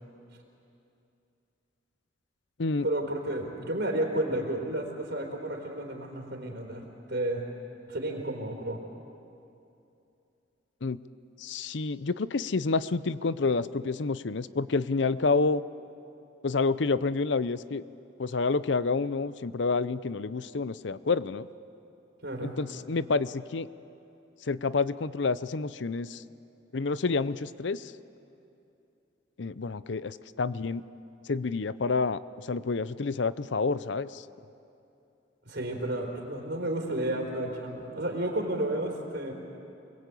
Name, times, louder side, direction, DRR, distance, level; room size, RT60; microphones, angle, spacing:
voice 1, 2.8-6.8 7.1-7.5 7.9-8.8 22.2-22.6 35.5-39.3, right 1 dB, 65° right, -1 dB, 3.9 m, -32 dB
voice 2, 11.4-15.6 16.4-17.8 18.2-21.5 22.4-23.7 24.5-26.2 26.7-27.9 29.4-30.8 31.3-34.2, left 4 dB, 70° left, 16 dB, 0.6 m, -29 dB
28.0 x 21.0 x 8.4 m, 2.7 s
head